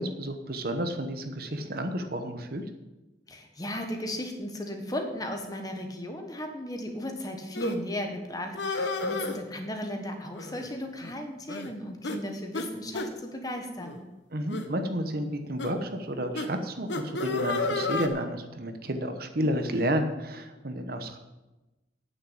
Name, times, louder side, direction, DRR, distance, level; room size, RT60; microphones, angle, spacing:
voice 1, 0.0-2.6 14.3-21.2, equal, 50° right, 7 dB, 1.0 m, -31 dB
voice 2, 3.3-14.0, left 1 dB, 20° left, 4 dB, 1.3 m, -36 dB
sound 1, 7.5-7.8 8.5-9.4 10.3-10.7 11.0-11.1 11.5-11.7 12.0-12.2 12.5-12.7 12.9-13.1 13.8-14.0 14.5-14.7 15.6-15.7 16.3-16.5 16.9-18.1, left 3 dB, 70° left, 1.0 m, -31 dB
9.1 x 6.6 x 8.6 m, 1.1 s
head